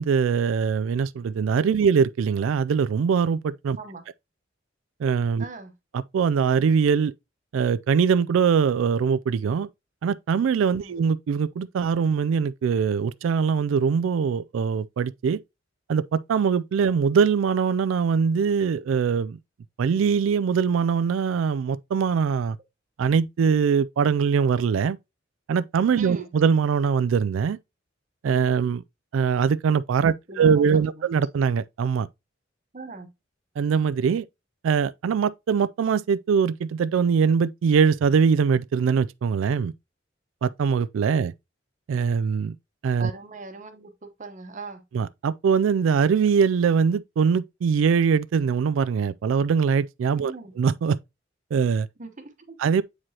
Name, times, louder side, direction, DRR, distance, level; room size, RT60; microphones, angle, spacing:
voice 1, 0.0-3.8 5.0-5.5 5.9-7.1 7.5-9.7 10.0-15.4 15.9-19.4 19.8-22.6 23.0-25.0 25.5-27.6 28.2-28.8 29.1-32.1 33.6-34.3 34.6-39.7 40.4-41.3 41.9-42.5 42.8-43.1 44.9-51.0 51.5-51.9 52.6-52.8, right 6 dB, 80° right, 0.3 m, -22 dB
voice 2, 5.4-5.7 10.8-11.0 26.0-26.3 30.0-31.1 32.7-33.1 43.0-44.8 50.2-50.5 52.0-52.6, right 3 dB, 40° right, 1.0 m, -40 dB
7.5 x 4.8 x 2.8 m
head